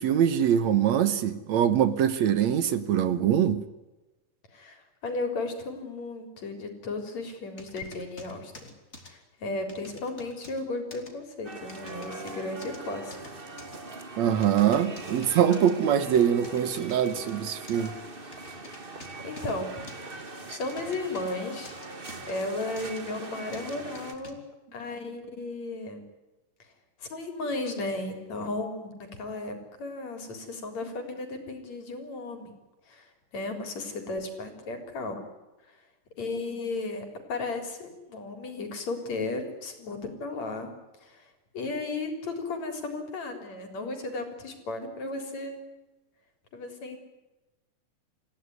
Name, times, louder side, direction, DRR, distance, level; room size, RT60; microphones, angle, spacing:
voice 1, 0.0-3.6 14.2-17.9, right 9 dB, 70° right, 2.3 m, -23 dB
voice 2, 4.5-8.7 9.0-13.3 19.2-19.7 20.5-21.7 22.3-26.0 26.6-26.7 27.0-32.5 32.9-35.2 35.6-35.8 36.2-40.7 41.0-45.6 46.5-47.0, left 2 dB, 60° left, 5.1 m, -35 dB
sound 1, 7.6-9.1 9.7-10.6 10.9-11.1 11.7-12.8 13.1-13.8 14.4-15.7 16.0-17.3 17.7-17.9 18.3-19.5 19.9-21.4 21.7-22.3 22.8-23.0 23.5-24.3, left 2 dB, 20° left, 3.7 m, -48 dB
sound 2, 11.4-24.2, right 2 dB, 20° right, 1.5 m, -42 dB
27.5 x 16.5 x 9.7 m
omnidirectional pair, 3.5 m